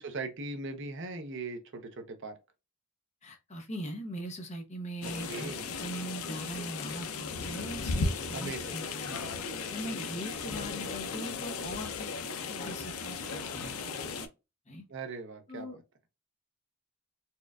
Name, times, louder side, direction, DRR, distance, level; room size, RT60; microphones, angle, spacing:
voice 1, 0.0-2.4 5.0-5.7 8.3-8.8 14.9-15.8, right 3 dB, 55° right, 0.6 m, -40 dB
voice 2, 3.2-5.5 5.8-12.1 12.5-14.0 14.7-14.9 15.5-15.8, right 1 dB, 30° left, 0.8 m, -41 dB
sound 1, 5.0-14.3, left 4 dB, 80° left, 0.5 m, -36 dB
4.3 x 2.4 x 2.3 m
head